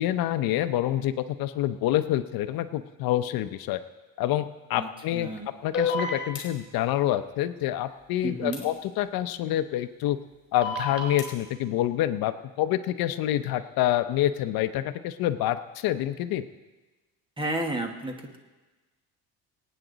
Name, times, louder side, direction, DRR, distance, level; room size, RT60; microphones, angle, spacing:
voice 1, 0.0-3.8 4.2-5.3 5.6-10.2 10.5-16.5, left 13 dB, 70° left, 10 dB, 0.7 m, -27 dB
voice 2, 4.8-5.5 8.2-8.6 17.4-18.4, right 2 dB, 15° right, 3 dB, 1.5 m, -32 dB
sound 1, 5.7-6.4 8.5-8.6 10.6-11.2, left 3 dB, 35° left, 4.3 m, -28 dB
25.5 x 9.0 x 4.0 m, 1.2 s
cardioid pair, 145°, 38 cm